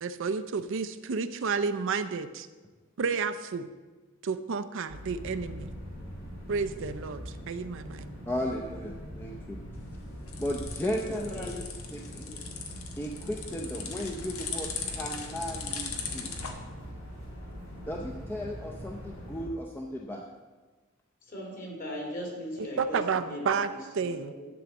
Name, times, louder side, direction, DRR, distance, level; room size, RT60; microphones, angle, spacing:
voice 1, 0.0-2.5 3.0-3.7 4.2-5.7 6.5-8.1 22.6-24.3, right 5 dB, 60° right, 11 dB, 0.5 m, -31 dB
sound 1, 4.9-19.5, equal, 60° left, 3.4 m, -43 dB
voice 2, 8.3-9.6 10.4-11.6 11.9-12.3 13.0-16.3 17.8-20.3, equal, 10° left, 0 dB, 0.6 m, -35 dB
sound 2, 9.8-16.5, left 5 dB, 85° left, 1.2 m, -39 dB
voice 3, 11.1-11.5 12.2-12.4 21.3-23.0 23.3-23.6 24.0-24.5, equal, 40° left, -1 dB, 2.4 m, -39 dB
11.5 x 4.0 x 7.1 m, 1.3 s
head